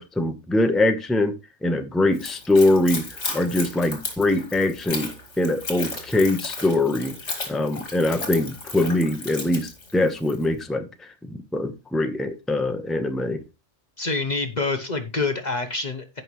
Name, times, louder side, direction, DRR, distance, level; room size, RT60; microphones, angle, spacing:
voice 1, 0.0-1.3 1.6-3.0 3.3-7.1 7.5-10.9 11.3-13.4, left 2 dB, ahead, 7 dB, 0.9 m, -23 dB
Splash splatter / Trickle dribble, 2.1-10.5, left 3 dB, 65° left, 2.5 m, -35 dB
voice 2, 14.0-16.2, left 3 dB, 40° left, 7 dB, 1.0 m, -26 dB
15.0 x 5.6 x 3.1 m, 0.26 s
omnidirectional pair, 1.3 m